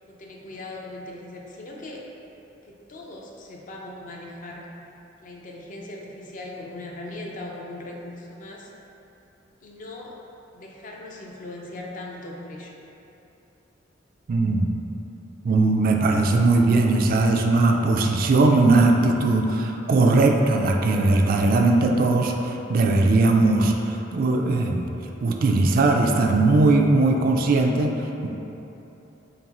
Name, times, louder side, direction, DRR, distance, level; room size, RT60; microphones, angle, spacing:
voice 1, 0.1-2.1 2.6-4.7 5.2-8.7 9.6-10.2 10.5-12.8, left 2 dB, 45° left, -1 dB, 0.5 m, -39 dB
voice 2, 14.3-14.7 15.4-24.9 25.2-28.3, right 2 dB, 50° right, 3 dB, 0.3 m, -19 dB
3.8 x 3.6 x 3.0 m, 3.0 s
head